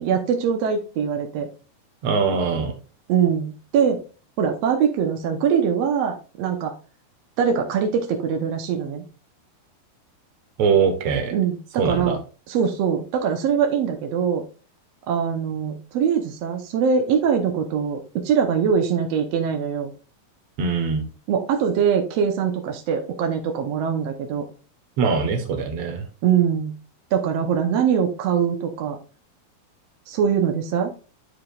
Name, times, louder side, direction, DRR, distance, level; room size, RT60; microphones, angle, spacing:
voice 1, 0.0-1.5 3.1-4.0 4.4-6.7 7.4-9.0 11.3-12.2 12.5-14.4 15.1-19.9 21.3-24.4 26.2-26.7 27.1-29.0 30.1-30.9, right 7 dB, 80° right, 4 dB, 1.4 m, -22 dB
voice 2, 2.0-2.7 10.6-11.3 11.8-12.2 20.6-21.1 25.0-26.1, right 5 dB, 60° right, 5 dB, 1.9 m, -22 dB
11.0 x 4.9 x 2.4 m, 0.34 s
omnidirectional pair, 4.3 m